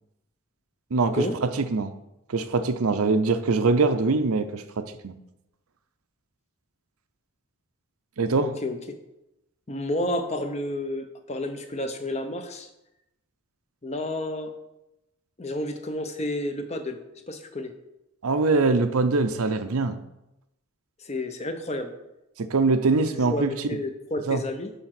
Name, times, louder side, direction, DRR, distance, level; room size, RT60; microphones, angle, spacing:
voice 1, 0.9-1.2 1.6-1.9 2.3-5.1 8.2-8.6 18.2-20.0 22.4-23.5 24.3-24.4, right 3 dB, 80° right, 10 dB, 0.6 m, -23 dB
voice 2, 8.4-8.8 9.7-12.7 13.8-14.5 15.4-17.0 17.3-17.7 21.0-21.9 23.2-24.7, left 1 dB, 30° left, 7 dB, 0.7 m, -30 dB
7.0 x 4.8 x 5.9 m, 0.88 s
head